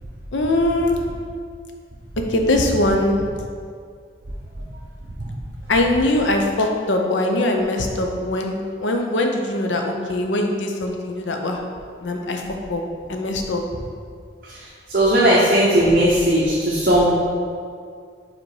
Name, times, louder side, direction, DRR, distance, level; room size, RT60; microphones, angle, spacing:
voice 1, 0.3-1.1 2.3-3.3 5.7-11.6 12.0-12.4 12.7-12.8 13.1-13.6, left 1 dB, 85° left, 3 dB, 0.7 m, -21 dB
voice 2, 14.9-17.1, right 1 dB, 50° right, -6 dB, 0.9 m, -17 dB
5.2 x 4.1 x 4.8 m, 2.1 s
head